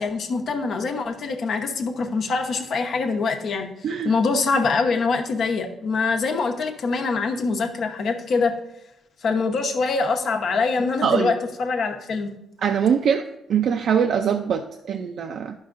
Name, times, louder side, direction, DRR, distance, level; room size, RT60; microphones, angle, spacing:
voice 1, 0.0-3.7 4.0-8.5 9.2-12.3, left 4 dB, 60° left, 4 dB, 0.9 m, -24 dB
voice 2, 11.0-11.3 12.6-13.2 13.5-15.5, right 7 dB, 65° right, 5 dB, 0.4 m, -22 dB
10.5 x 5.6 x 2.5 m, 0.84 s
cardioid pair, 90°, 0 cm